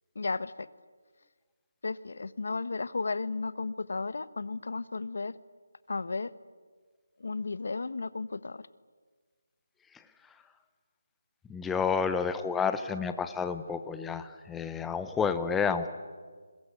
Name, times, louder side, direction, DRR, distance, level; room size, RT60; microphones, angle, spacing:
voice 1, 0.1-0.7 1.8-5.3 5.9-6.3 7.2-8.7, left 3 dB, 70° left, 16 dB, 1.2 m, -34 dB
voice 2, 11.5-15.9, left 6 dB, 5° left, 9 dB, 0.9 m, -30 dB
28.0 x 22.0 x 8.5 m, 1.5 s
figure-of-eight pair, 170°, 0 cm